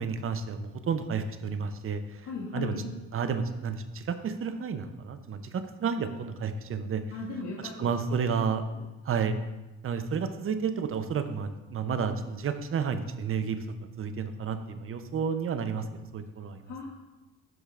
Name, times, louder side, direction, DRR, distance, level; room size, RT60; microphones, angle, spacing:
voice 1, 0.0-2.3 2.5-2.7 3.1-7.0 7.8-8.6 9.0-9.4 9.8-13.6 14.0-15.9 16.1-16.6, right 6 dB, 45° right, 9 dB, 0.7 m, -31 dB
voice 2, 2.2-2.8 7.1-7.9 8.7-8.8 16.7-16.9, left 3 dB, 65° left, -3 dB, 1.2 m, -37 dB
12.0 x 5.1 x 2.5 m, 1.1 s
cardioid pair, 90°, 30 cm